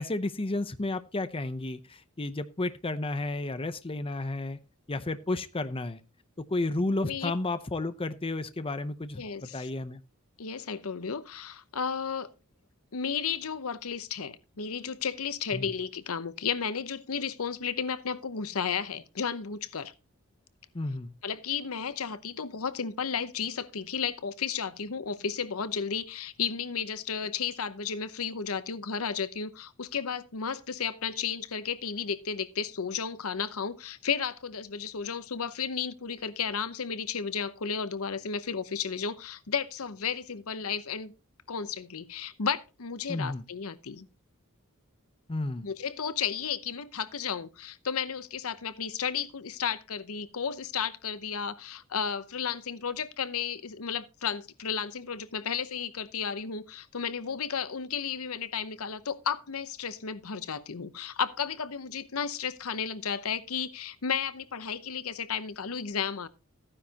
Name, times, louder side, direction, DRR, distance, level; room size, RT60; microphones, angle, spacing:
voice 1, 0.0-4.6 4.9-6.0 6.5-10.0 15.5-15.7 20.7-21.1 43.1-43.4 45.3-45.7, left 2 dB, 25° left, 0.7 m, -32 dB
voice 2, 9.2-9.7 10.4-12.3 12.9-19.9 21.2-41.1 41.5-44.1 45.6-66.3, left 6 dB, 75° left, 0.8 m, -33 dB
14.5 x 9.9 x 2.9 m
head